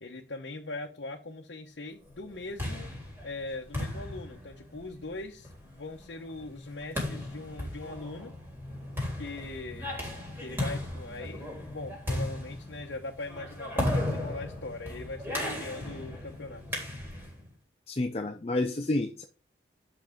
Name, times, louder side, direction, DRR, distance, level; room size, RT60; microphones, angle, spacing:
voice 1, 0.0-2.9 3.2-8.3 9.1-10.0 10.4-16.6, left 2 dB, 80° left, 0 dB, 1.0 m, -41 dB
sound 1, 2.2-17.4, left 1 dB, 15° right, 3.5 m, -36 dB
voice 2, 17.9-19.2, left 2 dB, 30° left, 5 dB, 0.6 m, -29 dB
7.0 x 5.9 x 5.0 m, 0.33 s
head